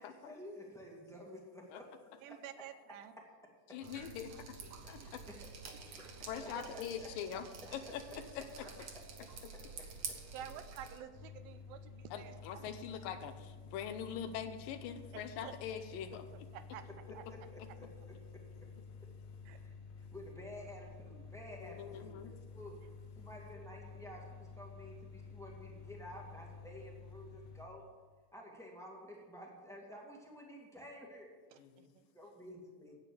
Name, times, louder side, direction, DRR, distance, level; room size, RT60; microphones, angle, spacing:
voice 1, 0.0-1.9 2.3-2.4 3.7-3.8 5.0-5.2 5.9-7.1 7.8-7.9 10.1-10.2 16.8-16.9 17.3-18.4 20.1-22.8 23.1-27.8 28.3-31.3 32.1-32.9, equal, ahead, -2 dB, 0.8 m, -51 dB
voice 2, 2.2-3.1 4.3-4.4 5.0-5.1 6.5-6.8 10.3-12.6 15.1-15.5 16.5-16.9 17.1-17.2 19.5-19.6 31.5-32.1, right 10 dB, 85° right, 11 dB, 2.4 m, -50 dB
voice 3, 3.7-4.6 4.9-5.2 6.3-7.4 7.7-8.5 9.4-9.5 12.1-16.2 21.6-22.3 31.6-31.9, left 8 dB, 80° left, 9 dB, 2.3 m, -43 dB
Drip, 3.8-11.0, right 5 dB, 55° right, 1.9 m, -49 dB
sound 1, 11.1-27.6, left 5 dB, 60° left, 2.0 m, -52 dB
11.0 x 8.6 x 6.8 m, 1.5 s
omnidirectional pair, 4.1 m